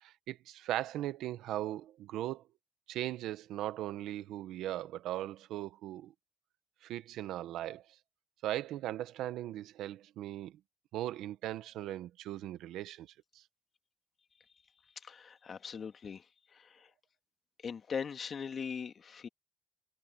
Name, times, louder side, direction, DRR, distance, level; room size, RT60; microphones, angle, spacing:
voice 1, 0.0-2.4 2.9-6.1 6.8-7.8 8.4-10.6 10.9-13.1 13.3-13.4, right 13 dB, 90° right, 1.3 m, -38 dB
voice 2, 15.0-16.9 17.6-19.3, left 6 dB, 50° left, 2.2 m, -41 dB
cardioid pair, 90°, 0 cm